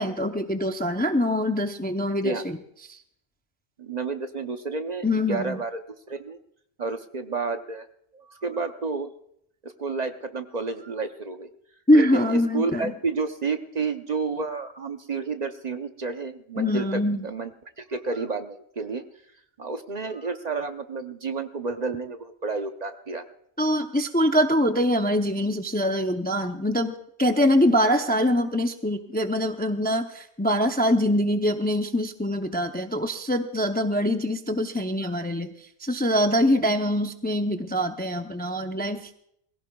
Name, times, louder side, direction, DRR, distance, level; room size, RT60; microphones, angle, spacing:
voice 1, 0.0-2.6 2.9-3.0 5.0-5.6 11.9-12.9 16.6-17.2 23.6-26.9 27.2-35.5 35.8-39.1, equal, 10° left, 6 dB, 0.5 m, -24 dB
voice 2, 3.8-5.8 6.1-6.4 6.8-7.9 8.1-9.1 9.6-11.5 11.9-17.5 17.8-19.0 19.6-23.2 35.0-35.2, right 4 dB, 45° right, 7 dB, 0.8 m, -31 dB
21.5 x 16.0 x 2.3 m, 0.71 s
omnidirectional pair, 1.1 m